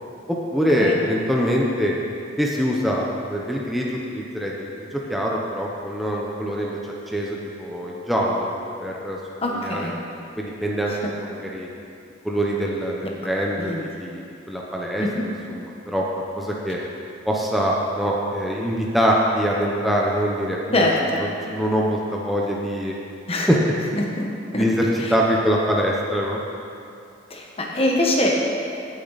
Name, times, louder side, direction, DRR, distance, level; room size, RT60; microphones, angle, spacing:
voice 1, 0.5-1.9 2.4-8.5 8.8-9.2 9.5-9.9 10.4-10.9 11.2-11.7 12.2-16.1 16.4-16.8 17.3-20.9 21.2-22.9 23.5-23.6 24.5-26.4, equal, ahead, -3 dB, 0.9 m, -24 dB
voice 2, 9.4-9.9 10.9-11.0 13.6-13.8 15.0-15.2 20.7-21.2 23.3-23.5 24.2-24.3 24.5-24.6 27.3-28.3, left 1 dB, 30° left, -1 dB, 1.3 m, -23 dB
16.5 x 6.7 x 4.1 m, 2.5 s
head